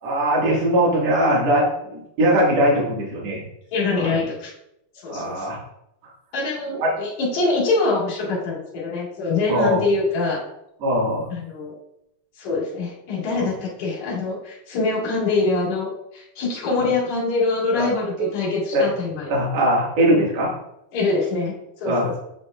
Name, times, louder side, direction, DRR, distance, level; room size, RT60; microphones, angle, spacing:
voice 1, 0.0-3.4 4.0-4.2 5.1-5.6 6.8-6.9 9.5-9.9 10.8-11.3 13.3-13.5 17.7-17.9 18.7-18.8 19.3-20.5 21.8-22.1, equal, 50° right, -5 dB, 2.3 m, -20 dB
voice 2, 3.7-4.5 5.0-5.5 6.3-10.4 11.3-11.7 12.4-19.3 20.9-22.1, left 3 dB, 50° left, -6 dB, 2.9 m, -24 dB
8.9 x 5.2 x 2.5 m, 0.82 s
omnidirectional pair, 5.2 m